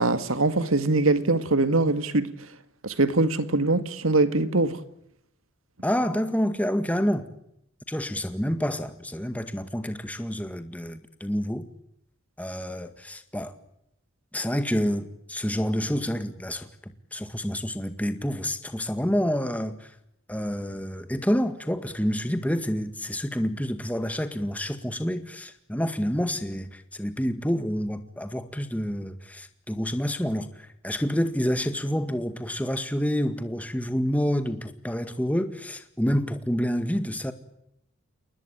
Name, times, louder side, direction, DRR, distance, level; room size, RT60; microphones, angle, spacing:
voice 1, 0.0-2.3 2.8-4.8, right 2 dB, 75° right, 2.0 m, -22 dB
voice 2, 5.8-7.3 7.9-11.7 12.4-13.6 14.3-19.9 20.3-37.3, equal, 5° left, 1.9 m, -28 dB
29.5 x 20.0 x 9.0 m
head